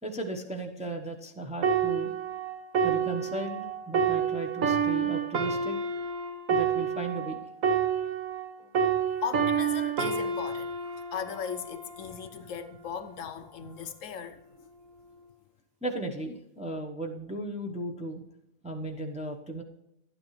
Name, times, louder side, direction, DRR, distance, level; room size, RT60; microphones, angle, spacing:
voice 1, 0.0-2.1 2.8-5.8 6.5-7.4 8.6-8.7 15.8-18.2 18.6-19.6, right 1 dB, 5° right, 0.8 m, -36 dB
sound 1, 1.6-8.5 8.7-12.3 13.0-13.2, right 6 dB, 70° right, 1.5 m, -29 dB
voice 2, 9.2-14.4, left 7 dB, 70° left, 1.0 m, -37 dB
11.5 x 9.3 x 3.2 m
omnidirectional pair, 1.4 m